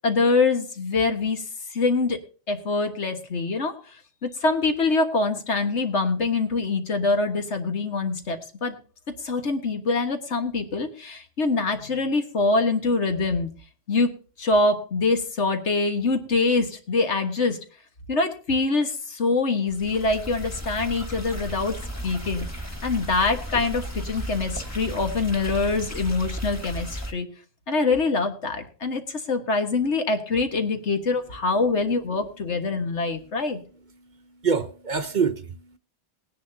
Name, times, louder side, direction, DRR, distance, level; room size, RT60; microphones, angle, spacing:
voice 1, 0.0-1.4 1.7-2.2 2.5-3.7 4.2-8.8 9.2-13.5 13.9-17.6 18.1-21.7 22.0-22.5 22.8-27.3 27.7-33.6, left 3 dB, 75° left, 6 dB, 1.8 m, -24 dB
sound 1, 19.7-27.1, equal, 15° left, 1.6 m, -35 dB
voice 2, 34.0-35.8, right 6 dB, 45° right, 9 dB, 0.8 m, -27 dB
19.5 x 10.5 x 2.7 m, 0.38 s
omnidirectional pair, 1.2 m